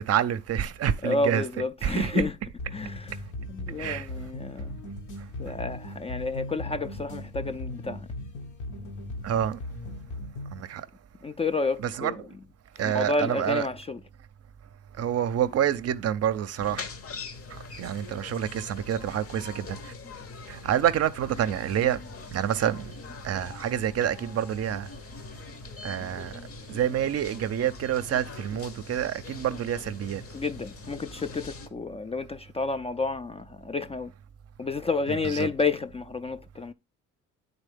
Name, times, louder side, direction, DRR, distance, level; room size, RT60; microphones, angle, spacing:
voice 1, 0.0-1.4 1.8-2.2 3.8-4.1 9.2-9.6 10.5-10.9 12.0-12.3 12.8-13.6 15.0-16.8 17.5-19.9 20.5-22.0 22.3-22.9 23.2-24.9 25.8-26.3 26.7-30.2 35.4-35.5, right 10 dB, 55° right, 0.6 m, -27 dB
voice 2, 1.0-2.4 2.7-3.2 3.5-4.8 5.4-8.1 11.2-12.2 12.8-14.0 30.3-34.1 34.6-36.7, left 3 dB, 20° left, 0.3 m, -30 dB
sound 1, 2.6-10.6, left 1 dB, 75° left, 1.1 m, -38 dB
sound 2, 16.6-31.7, left 4 dB, 50° left, 0.9 m, -43 dB
9.0 x 4.0 x 3.4 m
cardioid pair, 90°, 30 cm